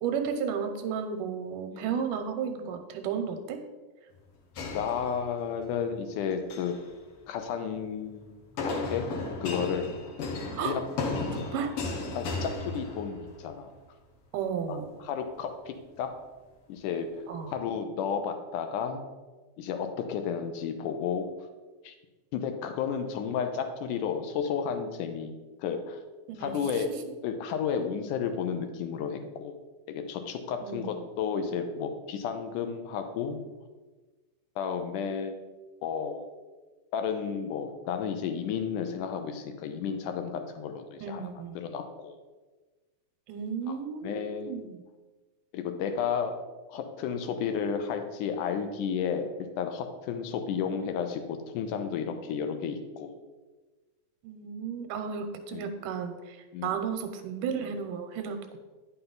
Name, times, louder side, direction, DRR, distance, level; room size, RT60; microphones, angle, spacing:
voice 1, 0.0-3.6 10.5-10.8 11.5-11.7 14.3-15.0 17.3-17.6 26.3-26.6 26.9-27.0 30.6-31.1 41.0-41.6 43.3-44.8 54.2-56.4 56.6-58.6, right 7 dB, 90° right, 7 dB, 2.2 m, -33 dB
sound 1, 4.6-5.6 6.3-6.8 8.6-13.4, left 3 dB, 60° left, 1.5 m, -34 dB
voice 2, 4.7-6.8 7.3-9.1 9.4-9.9 10.6-10.8 12.1-13.7 14.7-16.1 16.7-17.1 17.5-19.1 19.6-21.3 21.8-21.9 22.3-25.3 25.6-26.0 26.4-26.9 27.2-29.5 29.9-33.4 34.6-35.4 35.8-36.3 36.9-41.3 41.6-42.2 43.7-43.8 44.0-44.5 45.5-46.3 46.7-49.3 49.6-53.2 55.5-55.7 56.5-56.8, left 7 dB, 80° left, 7 dB, 2.2 m, -32 dB
9.8 x 5.6 x 3.9 m, 1.2 s
omnidirectional pair, 3.8 m